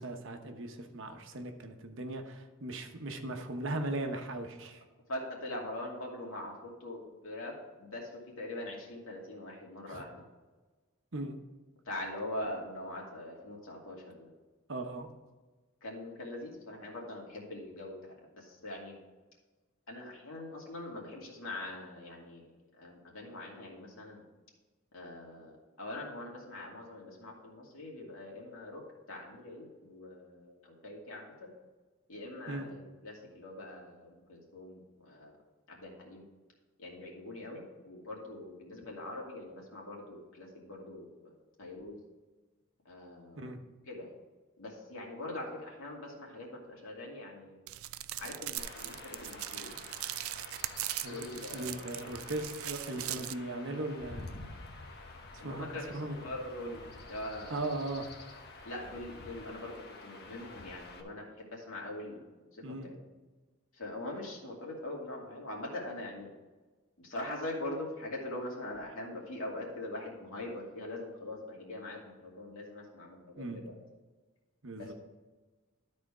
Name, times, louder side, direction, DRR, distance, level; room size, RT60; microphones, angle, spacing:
voice 1, 0.0-4.8 9.9-10.0 11.1-11.4 14.7-15.1 32.5-32.7 43.4-43.6 51.0-54.4 55.3-55.7 55.9-56.2 57.5-58.1 62.6-62.9 73.4-73.6 74.6-74.9, right 2 dB, 65° right, 5 dB, 1.0 m, -38 dB
voice 2, 5.1-7.5 7.8-10.2 11.9-14.3 15.8-19.0 19.9-22.5 22.8-24.2 24.9-28.8 29.1-31.5 32.1-35.3 35.7-36.2 36.8-41.1 41.6-42.0 42.8-43.5 43.9-44.1 44.6-47.6 48.2-49.8 51.0-51.8 55.4-57.8 58.6-59.8 60.0-62.2 62.5-63.0 63.7-66.3 67.0-73.7 74.7-74.9, left 1 dB, 70° left, -2 dB, 2.5 m, -42 dB
sound 1, 47.7-53.3, right 15 dB, 80° right, 0.4 m, -40 dB
Chirp tweet / Wind / Stream, 48.6-61.0, left 3 dB, 50° left, 1.1 m, -49 dB
12.5 x 4.3 x 4.9 m, 1.3 s
head